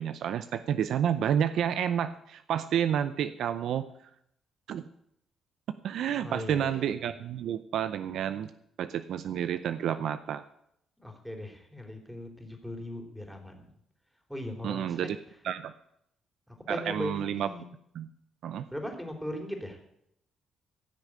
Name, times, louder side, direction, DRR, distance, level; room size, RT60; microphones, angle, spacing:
voice 1, 0.0-3.9 4.7-4.8 5.8-8.5 8.8-10.4 14.6-15.2 15.4-15.7 16.7-17.5 17.9-18.1 18.4-18.7, right 9 dB, 75° right, 12 dB, 0.6 m, -30 dB
voice 2, 6.2-6.9 11.0-13.7 14.3-15.1 16.5-17.7 18.7-19.8, left 1 dB, ahead, 3 dB, 3.3 m, -39 dB
15.5 x 6.5 x 8.7 m, 0.76 s
cardioid pair, 90°, 0 cm